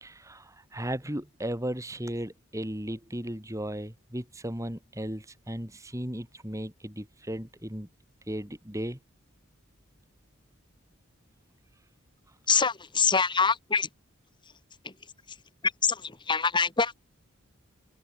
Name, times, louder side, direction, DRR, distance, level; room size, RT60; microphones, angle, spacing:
voice 1, 0.0-7.9 8.3-9.0, right 1 dB, 15° right, 3.0 m, -36 dB
voice 2, 12.5-13.9 14.8-14.9 15.3-15.4 15.6-16.9, left 5 dB, 20° left, 1.6 m, -25 dB
open air
head